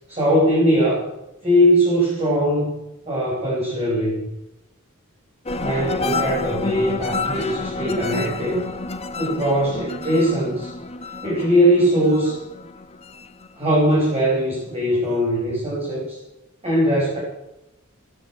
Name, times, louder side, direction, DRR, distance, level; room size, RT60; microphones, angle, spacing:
voice 1, 0.1-1.1 1.4-2.7 3.1-4.3 5.6-8.6 9.2-10.7 11.2-12.4 13.6-16.2 16.6-17.2, equal, 30° right, -6 dB, 5.3 m, -20 dB
sound 1, 5.4-14.3 14.7-15.2, left 3 dB, 30° left, 1.0 m, -29 dB
18.0 x 8.1 x 8.2 m, 0.92 s
head